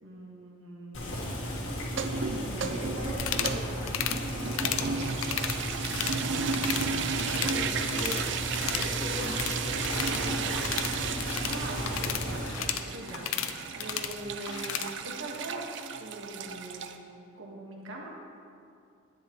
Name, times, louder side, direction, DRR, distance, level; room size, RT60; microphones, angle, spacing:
voice 1, 0.0-1.3 2.3-4.0 11.5-13.4 13.7-15.6 16.0-17.1 17.3-18.1, right 1 dB, 80° right, -2 dB, 1.6 m, -42 dB
Boiling, 0.9-12.7, equal, 70° left, 1.7 m, -35 dB
sound 1, 1.8-17.0, right 5 dB, 60° right, 0.5 m, -34 dB
sound 2, 3.2-3.6 3.9-4.2 4.5-4.9 5.2-6.2 6.5-6.9 7.2-8.3 8.5-14.9, left 9 dB, 85° left, 0.5 m, -34 dB
voice 2, 4.6-4.9 7.2-8.3 8.7-10.6, equal, 40° left, -8 dB, 1.5 m, -39 dB
10.5 x 9.6 x 3.1 m, 2.5 s
head